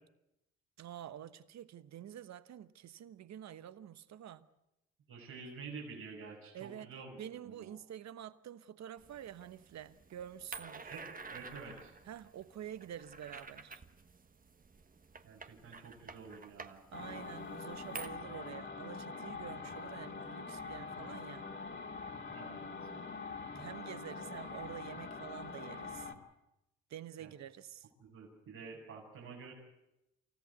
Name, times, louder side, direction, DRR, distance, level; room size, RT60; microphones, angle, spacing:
voice 1, 0.8-4.5 6.5-6.9 7.2-10.9 12.1-13.8 16.9-21.5 23.5-26.1 26.9-27.9, right 10 dB, 60° right, 1.1 m, -48 dB
voice 2, 5.1-7.2 7.4-7.7 10.9-11.9 15.2-16.8 22.3-22.7 27.2-27.3 28.0-29.5, right 5 dB, 75° right, 6.2 m, -49 dB
sound 1, 9.0-18.1, right 4 dB, 25° right, 1.4 m, -51 dB
sound 2, 16.9-26.1, left 4 dB, 35° left, 2.6 m, -44 dB
28.5 x 14.0 x 8.1 m
supercardioid pair, 65°, 32 cm